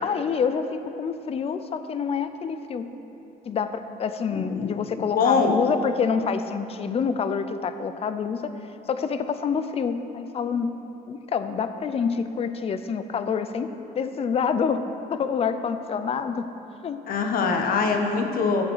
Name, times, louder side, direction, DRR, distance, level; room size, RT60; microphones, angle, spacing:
voice 1, 0.0-2.9 3.5-8.6 8.9-10.7 11.1-14.8 15.1-16.5 16.8-17.0, left 6 dB, 35° left, 10 dB, 0.6 m, -27 dB
voice 2, 4.4-4.7 5.2-5.6 17.1-18.6, left 5 dB, 60° left, 4 dB, 1.2 m, -23 dB
14.0 x 7.4 x 4.7 m, 2.9 s
cardioid pair, 110°, 17 cm